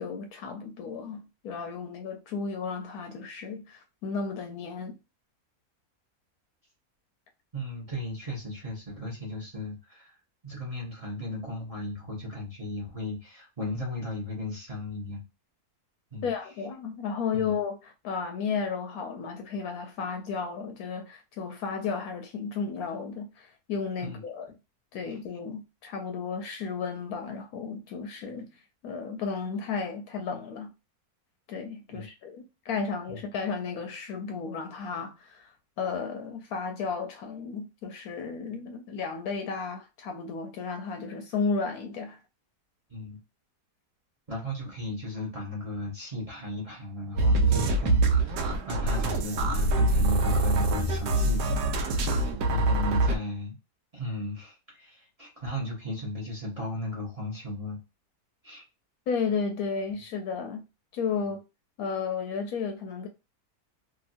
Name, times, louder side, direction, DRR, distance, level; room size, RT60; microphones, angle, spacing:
voice 1, 0.0-5.0 16.2-24.5 24.9-28.5 28.8-30.7 31.5-42.2 59.1-60.6 60.9-61.4 61.8-63.1, left 5 dB, 75° left, 1.0 m, -33 dB
voice 2, 7.5-10.2 10.4-15.2 16.1-16.3 17.3-17.5 24.0-24.2 25.0-25.2 31.9-32.1 33.1-33.2 42.9-43.2 44.3-52.0 52.5-53.6 53.9-57.8 58.4-58.6 61.2-61.4, left 1 dB, 30° right, 0.7 m, -36 dB
sound 1, 47.2-53.2, right 2 dB, 85° right, 1.1 m, -24 dB
2.9 x 2.6 x 2.5 m
omnidirectional pair, 1.6 m